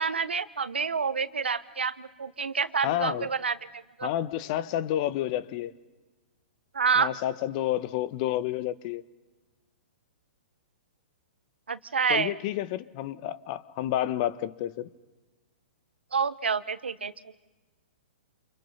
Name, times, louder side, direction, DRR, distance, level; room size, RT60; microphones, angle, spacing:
voice 1, 0.0-4.1 6.7-7.1 11.7-12.3 16.1-17.1, right 5 dB, 85° right, 13 dB, 1.3 m, -28 dB
voice 2, 2.8-3.3 4.0-5.7 7.0-9.0 12.1-14.9, left 13 dB, 45° left, 15 dB, 1.3 m, -30 dB
29.5 x 28.5 x 5.7 m, 1.2 s
hypercardioid pair, 120°, 6 cm